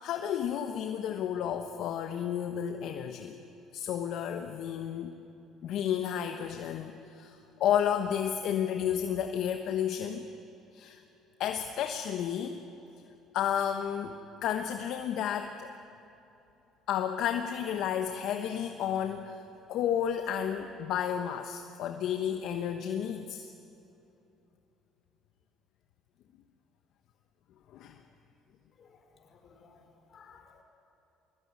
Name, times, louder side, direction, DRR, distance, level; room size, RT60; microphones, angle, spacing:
voice 1, 0.0-3.4 3.7-5.1 5.6-10.2 10.7-11.0 11.4-12.6 13.3-15.7 16.9-19.4 19.7-23.5 27.7-28.0, left 9 dB, 70° left, 6 dB, 1.2 m, -32 dB
voice 2, 28.8-29.8 30.1-30.6, left 5 dB, 50° left, 4 dB, 4.9 m, -58 dB
21.0 x 20.5 x 9.7 m, 2.9 s
supercardioid pair, 80°, 0 cm